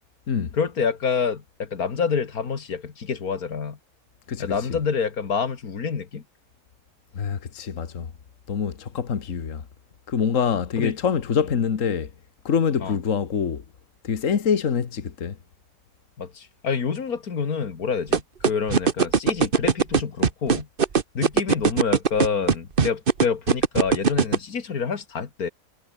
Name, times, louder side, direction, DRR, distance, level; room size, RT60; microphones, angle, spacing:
voice 1, 0.5-3.8 4.4-6.2 10.8-10.9 12.8-13.0 16.2-20.7 21.1-25.5, left 6 dB, 90° left, 2.4 m, -27 dB
voice 2, 7.1-8.1 8.5-9.6 10.1-12.1 12.5-13.6 14.0-15.4, left 7 dB, 60° left, 1.8 m, -25 dB
sound 1, 18.1-24.4, right 6 dB, 40° right, 1.3 m, -18 dB
omnidirectional pair, 1.5 m